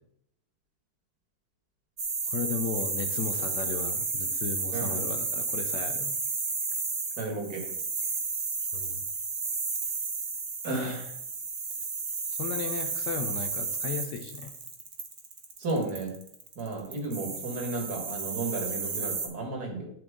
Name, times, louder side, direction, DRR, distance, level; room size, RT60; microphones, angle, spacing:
sound 1, 2.0-19.3, right 4 dB, 40° right, 1.3 m, -32 dB
voice 1, 2.3-6.1 8.7-9.0 12.4-14.5, left 6 dB, 80° left, 7 dB, 1.3 m, -35 dB
voice 2, 4.7-5.0 7.2-7.7 10.6-11.1 15.6-16.1 16.6-19.9, right 2 dB, 65° right, 2 dB, 2.2 m, -33 dB
11.5 x 4.7 x 3.6 m, 0.74 s
omnidirectional pair, 1.8 m